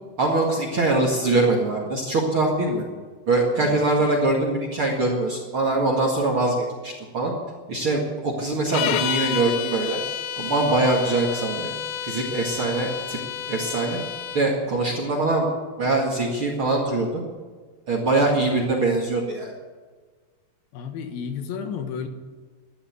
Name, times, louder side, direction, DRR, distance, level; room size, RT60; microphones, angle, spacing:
voice 1, 0.2-2.8 3.3-6.6 6.8-7.3 7.7-10.0 10.4-11.7 12.0-13.2 13.5-14.0 14.3-15.5 15.8-17.2 17.9-19.5, right 2 dB, 45° right, 1 dB, 1.8 m, -23 dB
voice 2, 3.6-3.9 20.7-22.1, left 6 dB, 65° left, 6 dB, 2.8 m, -32 dB
sound 1, 8.7-14.5, left 10 dB, 90° left, 2.1 m, -30 dB
13.0 x 11.5 x 9.4 m, 1.4 s
omnidirectional pair, 5.1 m